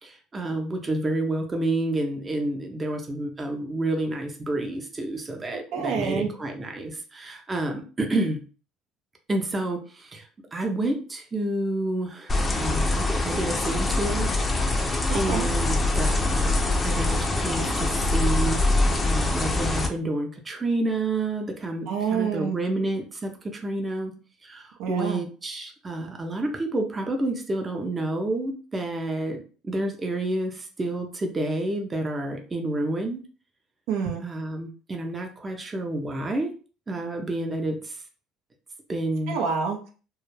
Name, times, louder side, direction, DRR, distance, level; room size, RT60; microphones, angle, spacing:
voice 1, 0.0-8.4 9.3-14.3 14.6-16.5 16.8-18.6 19.0-24.1 24.4-33.2 34.2-36.5 36.9-38.0 38.9-39.4, right 2 dB, 25° right, 3 dB, 0.6 m, -29 dB
voice 2, 5.5-6.3 15.1-15.5 21.9-22.6 24.8-25.2 33.9-34.2 39.3-39.9, right 6 dB, 75° right, 2 dB, 0.6 m, -27 dB
sound 1, 12.3-19.9, left 2 dB, 25° left, 0.5 m, -24 dB
2.3 x 2.1 x 3.1 m, 0.38 s
supercardioid pair, 80°, 0 cm